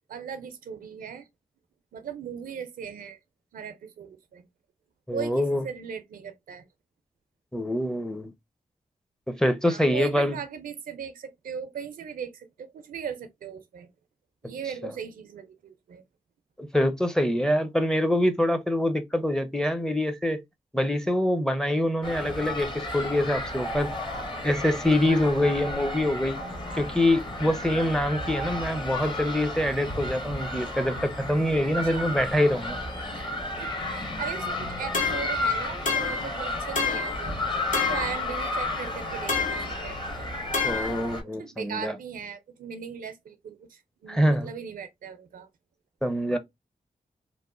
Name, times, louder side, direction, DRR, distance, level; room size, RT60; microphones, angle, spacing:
voice 1, 0.1-1.3 1.9-3.2 3.5-4.5 5.1-6.6 9.7-13.9 14.4-16.0 31.8-32.1 33.1-37.4 37.7-40.3 41.4-45.5, right 7 dB, 85° right, 0.4 m, -38 dB
voice 2, 5.1-5.6 7.5-8.3 9.3-10.4 16.6-20.4 20.7-23.9 24.4-26.4 26.7-32.8 40.6-41.9 44.1-44.5 46.0-46.4, left 1 dB, 5° left, 0.5 m, -25 dB
sound 1, 22.0-41.2, left 2 dB, 35° left, 1.0 m, -33 dB
sound 2, 34.9-35.4 35.9-36.3 36.8-37.2 37.7-38.2 39.3-39.7 40.5-41.0, left 4 dB, 65° left, 0.8 m, -28 dB
2.9 x 2.1 x 2.4 m
cardioid pair, 50°, 14 cm